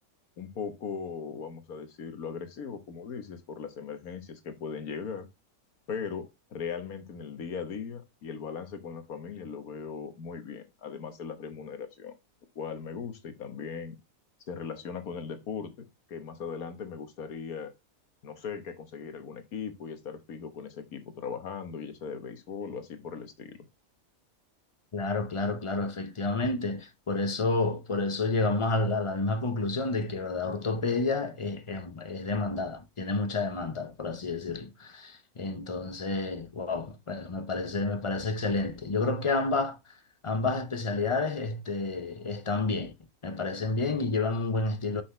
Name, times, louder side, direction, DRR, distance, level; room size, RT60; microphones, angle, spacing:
voice 1, 0.4-5.3 5.9-12.1 12.5-14.0 14.5-17.7 18.2-23.6, left 6 dB, 75° left, 1.6 m, -38 dB
voice 2, 24.9-42.9 43.2-45.0, left 3 dB, 40° left, 0.4 m, -30 dB
6.3 x 5.8 x 3.1 m
omnidirectional pair, 1.6 m